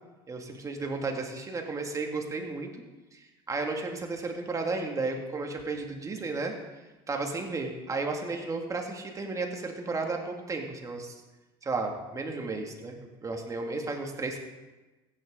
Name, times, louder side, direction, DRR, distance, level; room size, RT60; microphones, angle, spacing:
voice 1, 0.3-2.7 3.1-6.5 7.1-11.1 11.6-13.0 13.2-14.4, right 3 dB, 25° right, 2 dB, 2.1 m, -33 dB
15.0 x 10.0 x 3.8 m, 1.1 s
supercardioid pair, 100°, 14 cm